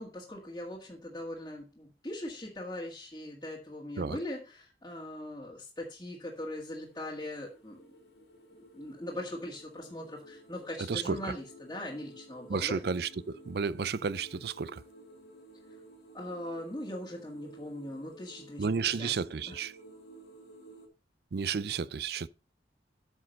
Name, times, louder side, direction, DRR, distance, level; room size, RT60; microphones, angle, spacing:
voice 1, 0.0-7.9 8.7-12.8 16.1-19.1 19.5-19.6, left 1 dB, 20° left, 1.8 m, -40 dB
sound 1, 6.3-20.9, right 1 dB, 70° left, 2.4 m, -54 dB
voice 2, 10.9-11.4 12.5-14.8 18.6-19.7 21.3-22.3, right 5 dB, 60° right, 0.5 m, -32 dB
8.8 x 6.4 x 5.2 m
head